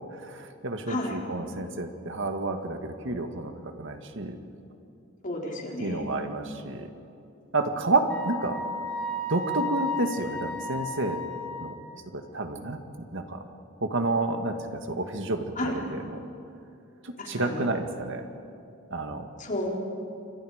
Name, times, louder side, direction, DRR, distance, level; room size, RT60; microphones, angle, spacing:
voice 1, 0.0-4.4 5.8-6.9 7.5-8.6 9.3-11.2 11.6-11.8 12.1-13.4 13.8-16.2 17.0-18.3 18.9-19.3, right 2 dB, 65° right, 6 dB, 1.8 m, -30 dB
voice 2, 0.9-1.2 5.2-6.1 15.6-15.8 17.2-17.7 19.4-19.7, left 1 dB, 40° left, -1 dB, 4.3 m, -32 dB
Wind instrument woodwind instrument, 8.1-11.9, left 1 dB, 5° left, 3.8 m, -34 dB
29.0 x 26.0 x 5.1 m, 2.7 s
head